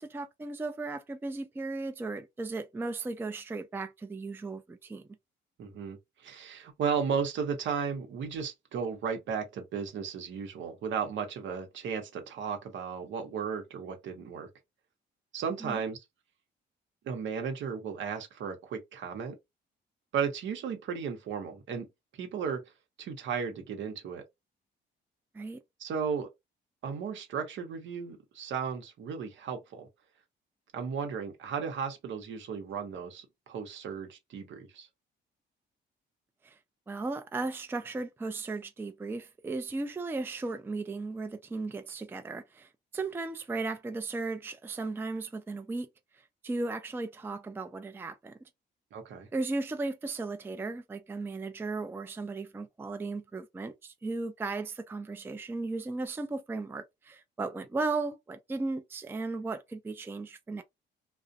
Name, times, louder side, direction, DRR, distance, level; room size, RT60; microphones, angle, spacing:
voice 1, 0.0-5.0 15.6-15.8 25.3-25.6 36.4-36.6 36.9-45.9 46.4-48.3 49.3-60.6, right 3 dB, 10° right, 0.3 m, -36 dB
voice 2, 5.6-14.5 15.3-16.0 17.0-19.4 20.1-21.9 22.1-22.6 23.0-24.2 25.8-26.3 26.8-29.9 30.7-34.9 48.9-49.3, right 6 dB, 70° right, 0.8 m, -35 dB
2.4 x 2.0 x 2.6 m
cardioid pair, 90°, 20 cm